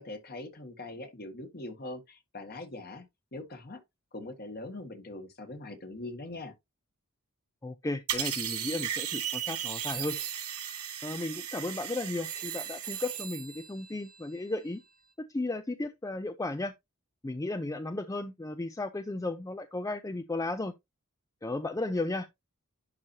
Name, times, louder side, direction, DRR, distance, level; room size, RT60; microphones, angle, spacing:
voice 1, 0.0-3.1 3.3-3.8 4.1-6.5, left 2 dB, 45° left, 1.8 m, -42 dB
voice 2, 7.6-10.2 11.0-14.8 15.2-16.7 17.2-20.7 21.4-22.3, left 2 dB, 15° left, 0.4 m, -34 dB
sound 1, 8.1-13.2, right 10 dB, 90° right, 2.7 m, -36 dB
sound 2, 9.6-15.1, right 9 dB, 35° right, 0.8 m, -43 dB
11.0 x 4.4 x 2.8 m
head